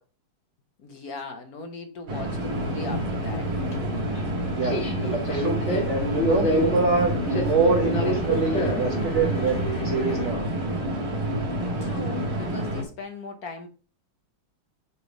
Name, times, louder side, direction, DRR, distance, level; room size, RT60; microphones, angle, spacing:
voice 1, 0.8-3.5 11.8-13.7, left 3 dB, 55° left, 1.2 m, -38 dB
sound 1, 2.1-12.8, right 1 dB, 80° right, 2.5 m, -28 dB
Subway metro underground, 2.4-10.3, equal, 40° left, 1.5 m, -29 dB
voice 2, 5.1-9.6 9.8-10.5, right 3 dB, 50° right, 0.9 m, -25 dB
6.9 x 3.5 x 5.0 m
omnidirectional pair, 2.2 m